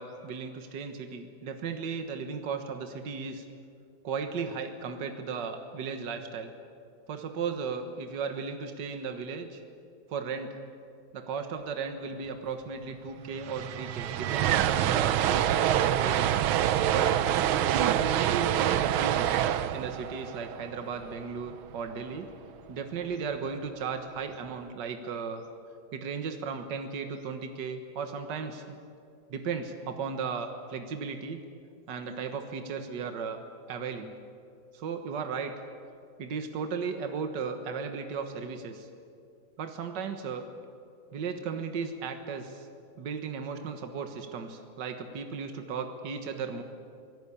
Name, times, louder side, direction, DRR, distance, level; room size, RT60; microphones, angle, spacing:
voice 1, 0.0-3.5 4.0-6.5 7.1-9.6 10.1-10.6 11.1-16.4 16.9-17.1 17.6-19.3 19.7-22.3 22.7-25.4 25.9-28.8 29.3-31.4 31.9-34.1 34.7-35.6 36.2-38.9 39.6-40.4 41.1-42.7 43.0-46.6, right 5 dB, 60° right, 6 dB, 2.0 m, -35 dB
sound 1, 12.9-13.0 13.2-21.4, right 11 dB, 90° right, 1.6 m, -26 dB
25.0 x 18.5 x 8.5 m, 2.3 s
omnidirectional pair, 2.2 m